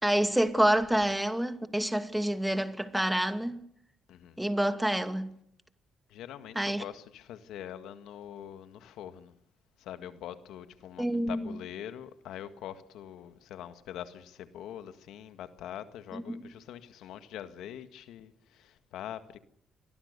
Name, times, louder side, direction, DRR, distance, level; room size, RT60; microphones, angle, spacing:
voice 1, 0.0-3.6 4.4-5.4 6.6-6.8 11.0-11.4 16.1-16.4, right 1 dB, 5° right, 2.5 m, -28 dB
voice 2, 4.1-4.4 6.1-9.3 9.8-19.4, left 10 dB, 85° left, 1.8 m, -44 dB
28.5 x 22.0 x 6.8 m
cardioid pair, 90°, 0 cm